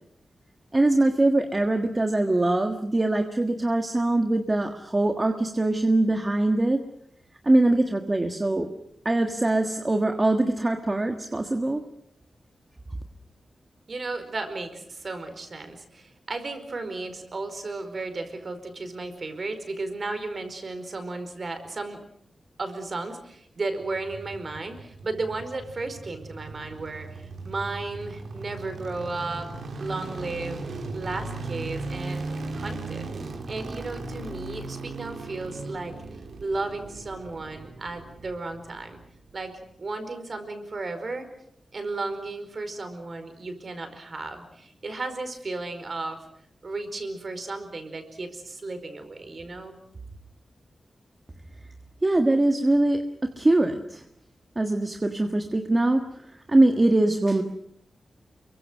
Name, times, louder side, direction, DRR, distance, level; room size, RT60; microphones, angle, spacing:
voice 1, 0.7-6.8 7.4-8.7 9.0-11.8 52.0-54.0 54.5-56.0 56.5-57.4, right 2 dB, 20° right, 5 dB, 1.6 m, -22 dB
voice 2, 13.9-22.0 22.6-29.5 29.8-32.2 32.5-35.9 36.4-39.0 39.3-41.3 41.7-46.2 46.6-49.8, right 3 dB, 40° right, 8 dB, 4.7 m, -34 dB
sound 1, 23.8-39.0 39.3-39.4, right 3 dB, 65° right, 4.0 m, -37 dB
30.0 x 23.5 x 6.3 m, 0.70 s
wide cardioid pair, 170°, 0 cm